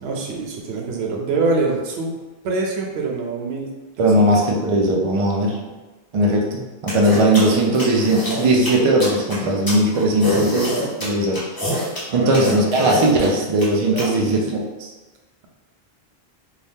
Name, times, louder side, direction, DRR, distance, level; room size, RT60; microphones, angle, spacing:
voice 1, 0.0-2.2 2.4-4.3 9.8-9.9 12.1-12.4 13.9-14.5, right 3 dB, 80° right, 0 dB, 0.8 m, -25 dB
voice 2, 4.0-5.6 6.1-11.8 12.1-14.9, right 1 dB, 50° right, -1 dB, 0.4 m, -19 dB
sound 1, 6.9-14.0, left 1 dB, 20° left, 0.8 m, -25 dB
2.7 x 2.3 x 3.5 m, 1.2 s
omnidirectional pair, 1.1 m